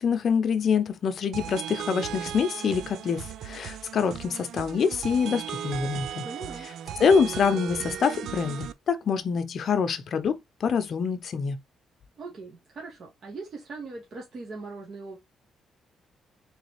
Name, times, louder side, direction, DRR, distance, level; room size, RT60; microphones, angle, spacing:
voice 1, 0.0-6.3 7.0-11.6, left 6 dB, 55° left, 0.6 m, -25 dB
sound 1, 1.3-8.7, right 9 dB, 75° right, 0.4 m, -36 dB
voice 2, 6.2-6.7 12.2-15.2, right 3 dB, 55° right, 1.4 m, -40 dB
3.9 x 3.2 x 3.1 m
cardioid pair, 90°, 0 cm